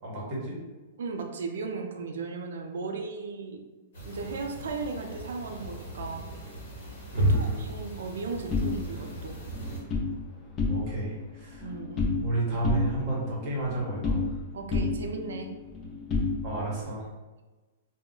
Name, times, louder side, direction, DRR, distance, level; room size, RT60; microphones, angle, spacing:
voice 1, 0.0-0.6 7.1-7.6 10.6-11.7 12.2-14.2 16.4-17.1, right 2 dB, 25° right, -5 dB, 0.8 m, -31 dB
voice 2, 1.0-3.6 4.0-6.3 7.2-9.4 11.6-12.1 14.5-15.5, right 4 dB, 75° right, 4 dB, 0.4 m, -36 dB
sound 1, 3.9-9.8, right 1 dB, 55° left, 1.3 m, -33 dB
sound 2, 8.5-10.1 10.5-11.1 11.4-12.3 12.6-14.4 14.7-16.8, left 3 dB, 15° left, 0.3 m, -30 dB
2.3 x 2.1 x 3.7 m, 1.2 s
supercardioid pair, 175°, 0 cm